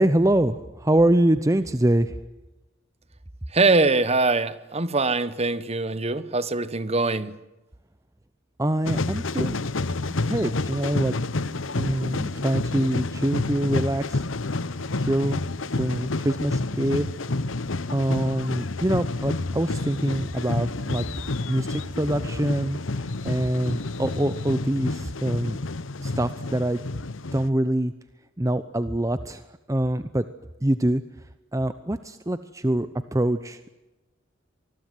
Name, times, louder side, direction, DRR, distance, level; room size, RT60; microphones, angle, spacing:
voice 1, 0.0-2.1 8.6-9.6 10.2-11.2 11.8-14.2 14.5-14.6 15.0-15.4 15.7-17.1 17.9-21.0 21.5-25.6 26.0-26.8 27.3-27.9 28.4-29.4 29.7-30.3 30.6-31.0 31.5-33.7, right 1 dB, 15° right, 12 dB, 0.9 m, -24 dB
voice 2, 3.5-7.3, right 3 dB, 35° right, 15 dB, 1.3 m, -23 dB
sound 1, 8.8-27.5, left 2 dB, 90° left, 1.0 m, -29 dB
25.5 x 20.5 x 9.7 m, 1.0 s
head